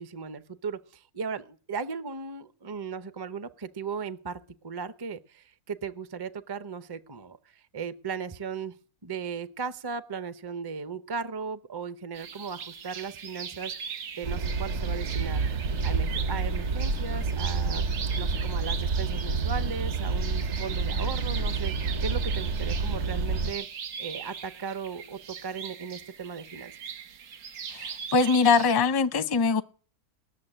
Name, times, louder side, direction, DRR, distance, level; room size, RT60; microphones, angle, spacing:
voice 1, 0.0-8.7 9.0-15.4 15.8-17.8 18.2-23.7 24.0-26.7, right 5 dB, 30° right, 0.5 m, -37 dB
sound 1, 12.1-28.7, right 7 dB, 80° right, 1.5 m, -40 dB
sound 2, 14.2-23.5, right 4 dB, 55° right, 1.1 m, -29 dB
voice 2, 27.7-29.6, left 4 dB, 30° left, 0.4 m, -22 dB
19.0 x 7.0 x 9.9 m
omnidirectional pair, 1.5 m